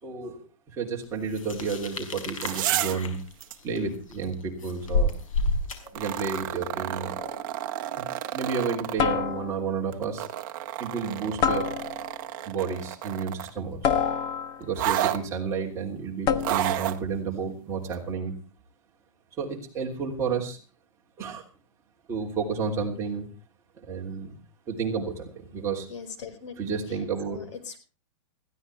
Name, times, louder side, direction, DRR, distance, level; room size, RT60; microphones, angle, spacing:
voice 1, 0.0-3.2 3.6-5.1 5.9-7.1 8.0-8.1 8.3-10.3 10.8-11.7 12.4-13.8 14.6-18.3 19.4-20.6 21.2-21.4 22.1-23.3 23.8-24.4 24.7-25.9 26.6-27.4, right 5 dB, 15° right, -1 dB, 3.2 m, -31 dB
sound 1, 1.3-6.4, left 2 dB, 90° left, 5.4 m, -30 dB
sound 2, 2.2-3.1 3.4-3.6 5.9-9.0 9.9-13.6 14.8-15.2 16.4-17.0 17.9-18.0, right 13 dB, 40° right, 1.3 m, -31 dB
sound 3, 7.2-7.5 9.0-9.8 11.4-12.2 13.8-14.8 16.3-16.8, left 7 dB, 25° left, 1.0 m, -27 dB
voice 2, 25.9-27.8, left 6 dB, 65° left, 10 dB, 4.9 m, -41 dB
20.5 x 15.5 x 3.3 m, 0.33 s
hypercardioid pair, 165°, 17 cm